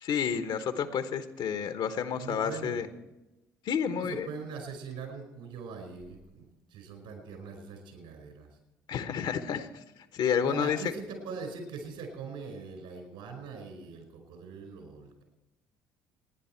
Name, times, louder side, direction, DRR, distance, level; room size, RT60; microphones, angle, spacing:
voice 1, 0.0-2.9 3.6-4.3 8.9-9.7 10.1-10.8, left 7 dB, 55° left, 9 dB, 1.2 m, -30 dB
voice 2, 2.1-2.8 3.9-8.6 10.4-15.2, right 5 dB, 70° right, 5 dB, 5.1 m, -42 dB
27.0 x 10.5 x 4.5 m, 1.0 s
hypercardioid pair, 55°, 9 cm